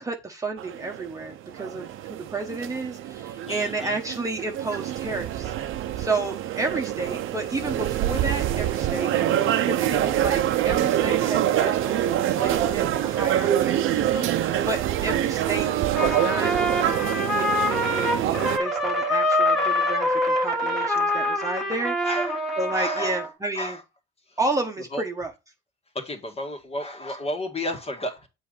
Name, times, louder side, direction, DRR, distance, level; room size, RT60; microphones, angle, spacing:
voice 1, 0.0-5.5 6.0-9.1 9.6-15.7 16.0-21.9 22.6-23.8 24.4-25.3, right 2 dB, 15° right, 1.2 m, -31 dB
sound 1, 0.6-18.6, right 12 dB, 70° right, 0.9 m, -25 dB
voice 2, 3.5-4.0 22.0-23.2 23.5-23.8 24.3-24.4 24.9-25.0 25.9-28.3, left 1 dB, 30° left, 1.9 m, -32 dB
Trumpet, 15.9-23.3, left 1 dB, ahead, 1.8 m, -25 dB
7.8 x 4.1 x 4.9 m
cardioid pair, 115°, 21 cm